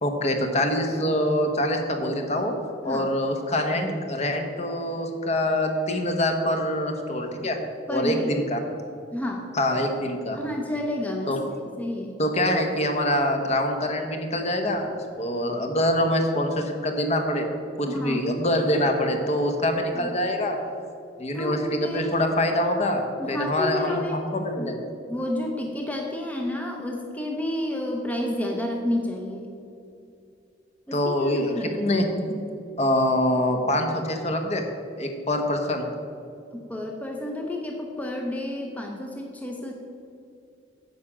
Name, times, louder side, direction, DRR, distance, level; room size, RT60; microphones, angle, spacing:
voice 1, 0.0-2.5 2.8-7.6 7.9-8.6 9.5-10.4 11.3-11.4 12.2-17.5 17.8-20.6 21.2-24.8 30.9-32.4 32.8-34.6 35.0-35.9, left 1 dB, 35° left, 4 dB, 1.0 m, -25 dB
voice 2, 2.8-3.1 7.9-8.3 9.1-9.5 10.3-11.4 11.8-12.2 17.9-18.2 19.9-20.1 21.3-22.2 23.2-24.2 24.6-24.7 25.1-29.5 30.9-31.9 36.5-39.7, left 1 dB, 10° left, 1 dB, 0.7 m, -30 dB
9.3 x 5.1 x 7.2 m, 2.5 s
head